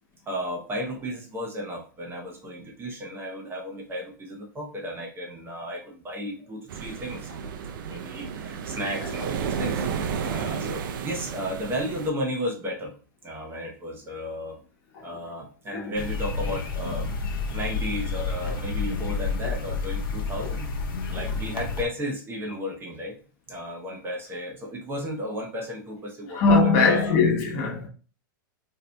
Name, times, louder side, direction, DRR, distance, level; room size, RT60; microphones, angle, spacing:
voice 1, 0.3-7.3 7.8-9.8 10.2-12.9 13.2-14.6 15.0-17.1 17.5-20.7 21.1-23.1 23.5-27.2, equal, 20° right, 0.7 m, -34 dB
sound 1, 6.7-12.1, right 7 dB, 70° right, 0.4 m, -32 dB
sound 2, 15.9-21.8, left 4 dB, 80° left, 0.8 m, -30 dB
voice 2, 26.3-27.9, left 4 dB, 45° left, 1.0 m, -21 dB
4.0 x 2.7 x 2.2 m
hypercardioid pair, 125°, 11 cm